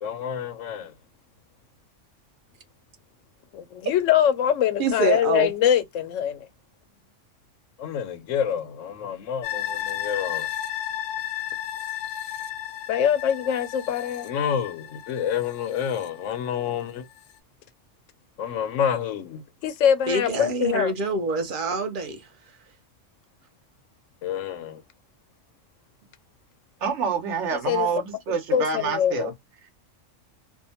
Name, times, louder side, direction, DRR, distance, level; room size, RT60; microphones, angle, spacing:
voice 1, 0.0-0.9 3.5-6.5 7.8-10.5 12.9-17.0 18.4-20.9 24.2-24.8 27.5-27.9 28.5-29.3, left 9 dB, 90° left, 1.0 m, -25 dB
voice 2, 4.8-5.5 20.1-22.2, right 3 dB, 55° right, 0.7 m, -26 dB
sound 1, 9.4-16.7 17.1-17.2, left 11 dB, 65° left, 0.8 m, -34 dB
voice 3, 26.8-29.3, right 6 dB, 70° right, 1.1 m, -27 dB
2.7 x 2.2 x 2.7 m
omnidirectional pair, 1.3 m